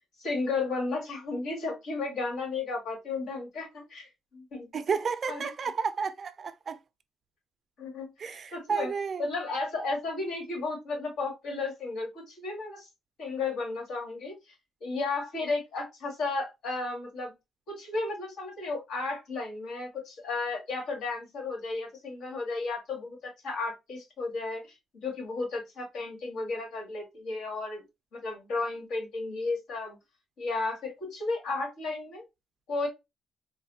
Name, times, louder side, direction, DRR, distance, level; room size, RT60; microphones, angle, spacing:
voice 1, 0.2-4.7 5.3-5.5 7.8-8.9 9.2-12.9 13.2-14.4 14.8-17.3 17.7-24.6 25.0-27.8 28.1-30.0 30.4-32.2 32.7-32.9, left 3 dB, 75° left, 2.0 m, -33 dB
voice 2, 4.7-6.8 8.2-9.2, right 5 dB, 45° right, 0.5 m, -31 dB
4.0 x 2.2 x 2.7 m
cardioid pair, 90°, 0 cm